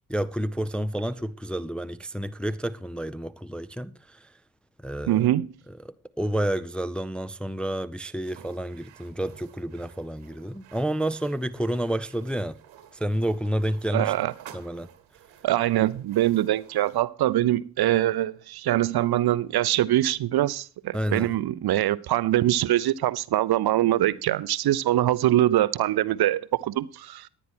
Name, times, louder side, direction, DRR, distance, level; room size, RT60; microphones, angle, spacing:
voice 1, 0.1-4.3 4.8-5.3 5.8-12.6 12.9-14.1 14.5-14.9 20.9-21.3, right 1 dB, ahead, 0.5 m, -30 dB
voice 2, 5.1-5.5 13.9-14.3 15.4-27.3, right 14 dB, 55° right, 0.7 m, -23 dB
sound 1, 8.2-17.0, right 10 dB, 75° right, 1.4 m, -52 dB
10.0 x 9.6 x 4.4 m
hypercardioid pair, 40°, 46 cm